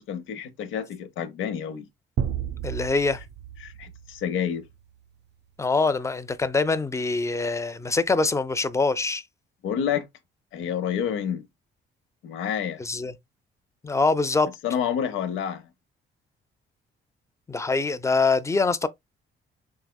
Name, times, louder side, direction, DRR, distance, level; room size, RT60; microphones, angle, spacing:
voice 1, 0.0-1.9 3.6-4.6 9.6-10.0 10.5-11.5 12.2-12.8 14.6-15.6, left 8 dB, 90° left, 0.8 m, -29 dB
sound 1, 2.2-5.0, right 9 dB, 60° right, 0.5 m, -33 dB
voice 2, 2.6-3.2 5.6-9.2 12.8-13.1 13.8-14.5 17.5-18.9, left 3 dB, 15° left, 0.5 m, -24 dB
4.7 x 3.4 x 2.2 m
cardioid pair, 90°, 20 cm